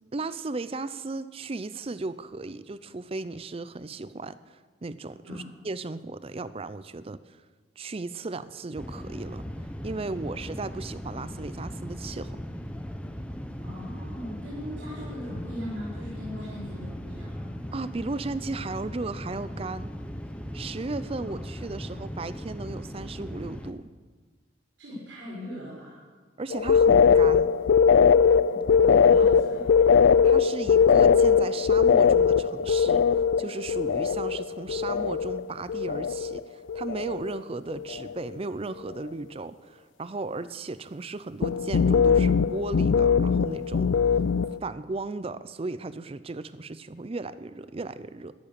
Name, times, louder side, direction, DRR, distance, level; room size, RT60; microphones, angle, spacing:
voice 1, 0.1-7.2 7.8-9.4 9.8-12.4 17.7-19.9 20.5-23.9 26.4-27.5 29.2-29.4 30.2-43.9 44.6-48.3, right 3 dB, 30° right, 15 dB, 0.5 m, -35 dB
sound 1, 8.8-23.7, equal, 5° left, 0.8 m, -38 dB
voice 2, 13.6-17.5 21.2-21.4 24.8-26.0 28.5-30.0, left 1 dB, 85° right, -7 dB, 5.2 m, -40 dB
sound 2, 26.5-35.4 35.7-36.4 36.7-37.4 37.7-38.1 41.4-44.6, left 6 dB, 80° left, 0.4 m, -21 dB
13.5 x 11.5 x 6.7 m, 1.4 s
head